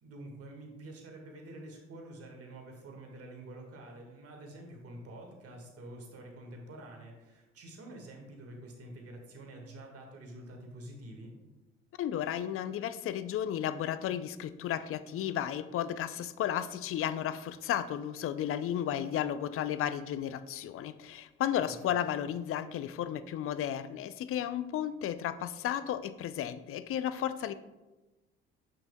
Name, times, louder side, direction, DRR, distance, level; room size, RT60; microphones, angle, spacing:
voice 1, 0.0-11.3 21.6-22.3, right 1 dB, 50° right, 2 dB, 1.7 m, -48 dB
voice 2, 12.0-27.5, left 10 dB, 45° left, 13 dB, 0.4 m, -33 dB
7.5 x 6.1 x 2.2 m, 1.1 s
hypercardioid pair, 60°, 31 cm